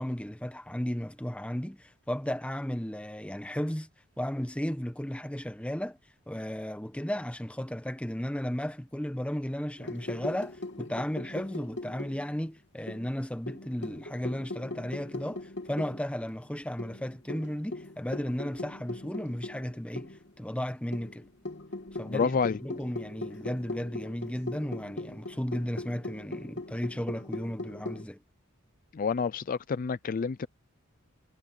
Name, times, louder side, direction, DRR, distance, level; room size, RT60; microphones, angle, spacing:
voice 1, 0.0-3.9 4.2-6.0 6.3-21.3 21.9-28.2, equal, 5° left, 1.1 m, -34 dB
sound 1, 9.8-12.5 12.9-16.0 16.3-16.4 16.8-20.3 20.9-28.1, left 2 dB, 60° left, 2.8 m, -40 dB
voice 2, 22.1-22.6 28.9-30.5, left 5 dB, 40° left, 0.4 m, -29 dB
head